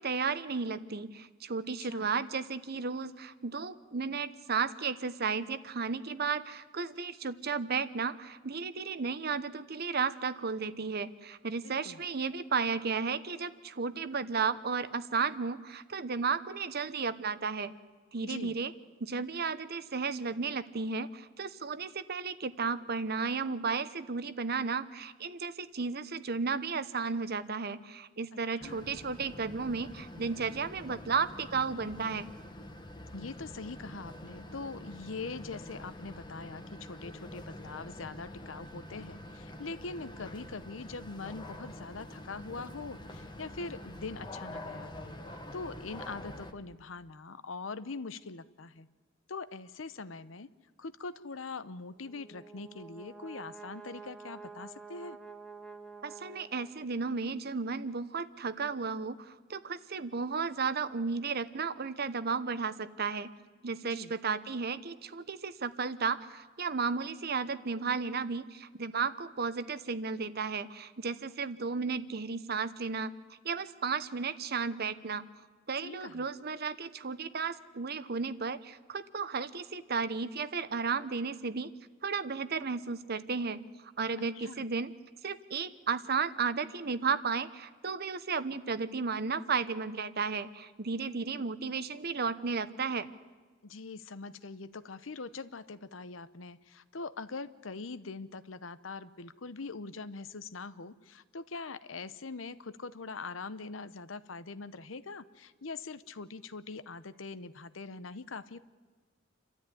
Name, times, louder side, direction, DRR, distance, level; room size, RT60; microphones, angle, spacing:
voice 1, 0.0-17.7 18.1-18.7 19.0-32.3 56.0-63.3 63.6-75.2 75.7-81.7 82.0-84.9 85.2-93.1, right 5 dB, 55° right, 14 dB, 0.9 m, -34 dB
voice 2, 11.6-12.0 18.2-18.5 28.5-28.8 33.1-45.1 45.5-48.9 49.3-50.5 50.8-55.2 63.9-64.1 75.8-76.2 84.3-84.6 93.6-108.6, left 4 dB, 90° left, 14 dB, 0.9 m, -43 dB
sound 1, 28.6-46.5, left 1 dB, 25° left, 1.3 m, -46 dB
Brass instrument, 52.0-57.0, right 4 dB, 5° left, 1.7 m, -49 dB
28.5 x 13.0 x 9.9 m, 1.4 s
head